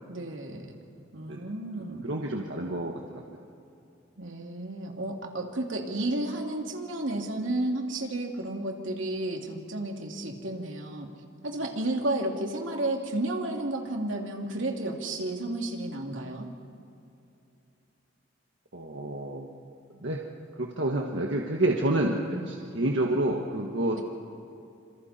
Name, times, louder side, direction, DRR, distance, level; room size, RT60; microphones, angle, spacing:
voice 1, 0.1-0.8 1.1-2.1 4.2-11.1 11.4-16.5 22.0-22.4 23.9-24.0, right 1 dB, 90° right, 1 dB, 2.9 m, -32 dB
voice 2, 1.7-3.2 18.7-19.7 20.0-20.2 20.6-24.0, right 1 dB, 70° right, 0 dB, 1.6 m, -29 dB
28.0 x 27.5 x 4.4 m, 2.7 s
head